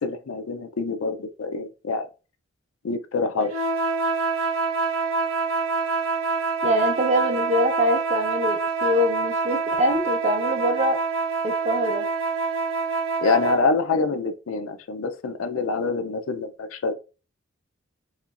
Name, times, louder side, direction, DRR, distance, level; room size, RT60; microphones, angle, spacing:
voice 1, 0.0-2.1 2.8-3.5 13.2-16.9, left 4 dB, 85° left, 0.5 m, -25 dB
sound 1, 3.5-13.7, right 4 dB, 90° right, 0.7 m, -26 dB
voice 2, 6.6-11.0 11.4-12.1, equal, 35° right, 0.6 m, -24 dB
4.3 x 3.0 x 2.4 m
head